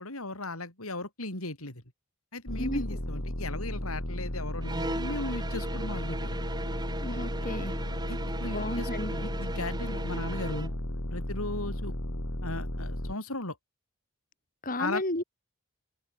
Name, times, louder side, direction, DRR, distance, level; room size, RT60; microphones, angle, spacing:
voice 1, 0.0-1.8 2.3-6.4 8.1-10.7 11.1-11.9 12.4-13.6 14.8-15.0, left 2 dB, 85° left, 6.8 m, -37 dB
sound 1, 2.5-13.1, left 1 dB, 60° left, 4.3 m, -34 dB
voice 2, 2.6-3.0 7.0-7.7 8.5-9.3 14.6-15.2, left 1 dB, 40° left, 5.5 m, -33 dB
sound 2, 4.6-10.8, right 2 dB, 20° right, 5.2 m, -38 dB
open air
head